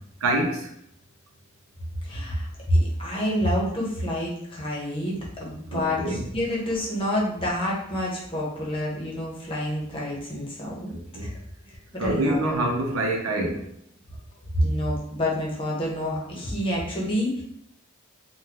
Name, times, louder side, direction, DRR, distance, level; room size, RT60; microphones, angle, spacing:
voice 1, 0.2-0.6 5.7-6.3 11.1-11.3 12.0-13.6, right 1 dB, 90° right, 1 dB, 0.6 m, -25 dB
voice 2, 2.0-10.9 11.2-11.3 11.9-12.4 14.5-17.4, equal, 25° left, -4 dB, 0.9 m, -27 dB
3.7 x 2.2 x 2.9 m, 0.72 s
head